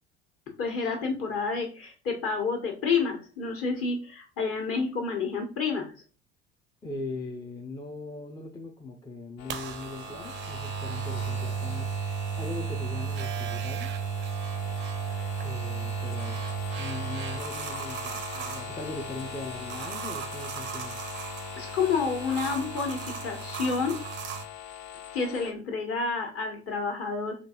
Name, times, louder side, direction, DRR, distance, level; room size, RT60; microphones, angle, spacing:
voice 1, 0.6-5.9 21.6-24.0 25.1-27.4, left 5 dB, 45° left, 1.4 m, -29 dB
voice 2, 6.8-11.9 12.4-13.9 15.4-21.0, left 2 dB, 15° left, 0.5 m, -40 dB
sound 1, 9.4-25.5, left 10 dB, 65° left, 0.6 m, -42 dB
sound 2, 9.5-24.5, right 7 dB, 35° right, 0.5 m, -35 dB
3.7 x 2.6 x 2.9 m
figure-of-eight pair, 65°, 33 cm